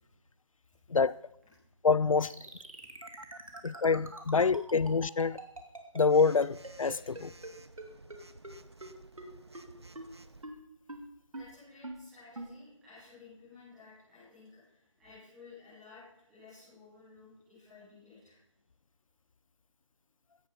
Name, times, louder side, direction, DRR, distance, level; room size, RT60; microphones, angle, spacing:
voice 1, 1.8-2.3 3.6-5.4 5.9-7.3, left 5 dB, 80° left, 0.4 m, -26 dB
sound 1, 2.3-7.5 7.8-7.9 8.1-8.2 8.4-8.5 8.8-8.9 9.2-9.3 9.5-9.6 9.9-10.0 10.4-10.5 10.9-11.0 11.3-11.4 11.8-11.9 12.3-12.5, right 2 dB, 90° right, 2.9 m, -43 dB
Telephone, 3.0-4.4 6.1-10.4, right 2 dB, 55° right, 0.8 m, -52 dB
voice 2, 3.4-3.8 11.3-16.0 16.3-18.4, left 4 dB, ahead, 3.1 m, -55 dB
16.0 x 9.0 x 5.8 m
figure-of-eight pair, 175°, 17 cm